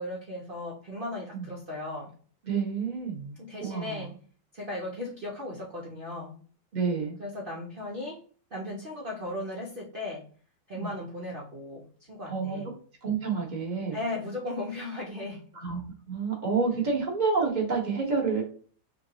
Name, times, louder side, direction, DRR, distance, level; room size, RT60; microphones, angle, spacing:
voice 1, 0.0-2.1 3.4-4.2 4.5-6.4 7.2-8.2 8.5-10.3 10.7-12.7 13.9-15.4, left 1 dB, 70° right, -2 dB, 0.5 m, -36 dB
voice 2, 2.4-4.1 6.7-7.2 10.7-10.9 12.3-12.6 13.0-14.0 15.5-15.8 16.1-18.4, right 5 dB, 30° right, -1 dB, 1.0 m, -29 dB
5.6 x 2.2 x 2.8 m, 0.43 s
omnidirectional pair, 2.0 m